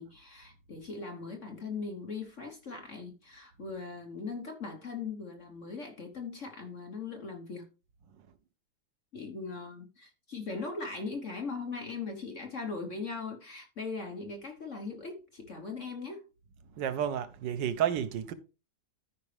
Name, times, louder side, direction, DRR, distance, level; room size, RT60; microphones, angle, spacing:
voice 1, 0.0-7.6 9.1-16.2, left 4 dB, 45° left, 1.4 m, -39 dB
voice 2, 16.8-18.3, right 9 dB, 85° right, 1.5 m, -31 dB
13.5 x 5.3 x 3.3 m
omnidirectional pair, 1.9 m